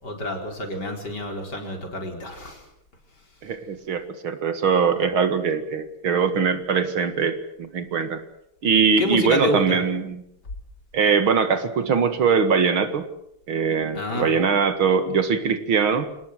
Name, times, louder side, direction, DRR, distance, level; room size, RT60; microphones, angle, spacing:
voice 1, 0.0-2.6 9.0-9.8 13.9-14.3, left 1 dB, 50° left, 3 dB, 5.2 m, -28 dB
voice 2, 3.4-8.2 8.6-10.2 10.9-13.1 13.5-16.1, right 6 dB, 75° right, 10 dB, 2.7 m, -22 dB
27.0 x 19.0 x 8.0 m, 0.76 s
omnidirectional pair, 2.3 m